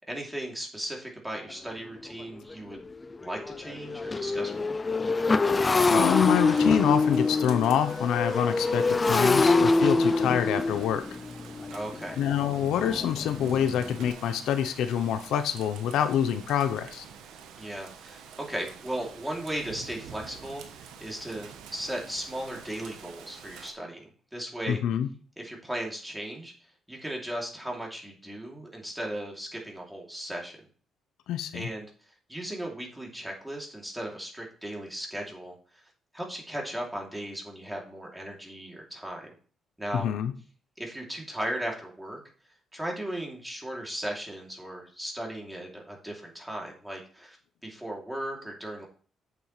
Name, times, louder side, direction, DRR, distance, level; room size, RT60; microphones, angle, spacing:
voice 1, 0.1-2.9 3.2-4.8 11.7-12.2 17.6-24.8 25.4-26.5 26.9-30.7 31.5-31.9 32.3-35.6 36.1-39.3 39.8-40.1 40.8-42.2 42.7-47.4 47.6-48.9, right 1 dB, 5° right, -1 dB, 2.8 m, -36 dB
Motorcycle, 1.5-1.6 2.1-2.2 2.5-14.1, left 3 dB, 25° left, 0.4 m, -26 dB
voice 2, 5.9-11.0 12.2-17.0 24.7-25.1 31.3-31.7 39.9-40.3, left 9 dB, 85° left, 9 dB, 0.7 m, -26 dB
Rain, 6.4-23.7, right 7 dB, 90° right, 1.0 m, -48 dB
8.1 x 7.0 x 3.2 m, 0.41 s
cardioid pair, 90°, 0 cm